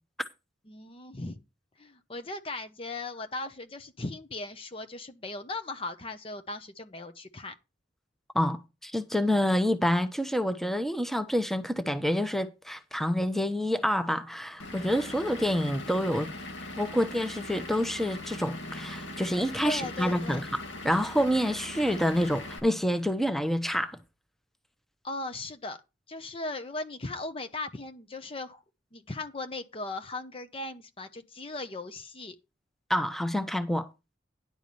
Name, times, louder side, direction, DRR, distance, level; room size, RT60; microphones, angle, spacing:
voice 1, 0.7-1.4 1.8-7.5 19.6-20.4 25.0-25.8 26.1-28.6 28.9-32.4, left 2 dB, 30° left, 0.8 m, -38 dB
voice 2, 8.3-16.3 16.8-20.5 20.8-24.0 32.9-33.9, equal, ahead, 0.9 m, -27 dB
Vehicle / Engine, 14.6-22.6, left 2 dB, 75° left, 2.2 m, -40 dB
10.5 x 4.8 x 6.8 m
head